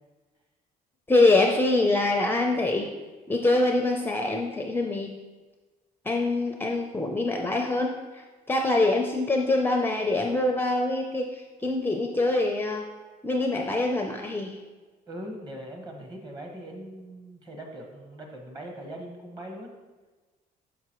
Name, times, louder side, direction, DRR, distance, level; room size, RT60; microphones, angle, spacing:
voice 1, 1.1-2.9 3.3-5.1 6.0-12.9 13.2-14.6, left 2 dB, 10° left, 2 dB, 0.5 m, -24 dB
voice 2, 15.1-19.7, right 1 dB, 25° right, 1 dB, 1.3 m, -40 dB
5.9 x 5.8 x 3.0 m, 1.3 s
cardioid pair, 110°, 17 cm